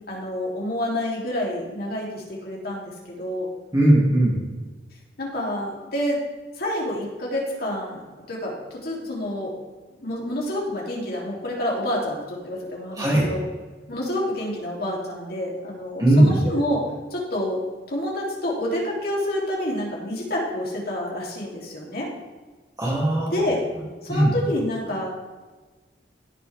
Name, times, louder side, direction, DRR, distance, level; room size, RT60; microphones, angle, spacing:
voice 1, 0.1-3.5 5.2-6.2 6.6-8.6 8.8-9.5 10.0-13.4 13.9-16.8 17.1-17.6 17.9-22.1 23.3-23.6 24.0-25.1, left 1 dB, 60° left, -3 dB, 3.3 m, -28 dB
voice 2, 3.7-4.4 12.9-13.3 16.0-16.4 22.8-23.5 24.1-24.3, right 1 dB, 20° right, -6 dB, 2.9 m, -18 dB
17.5 x 6.7 x 3.6 m, 1.3 s
head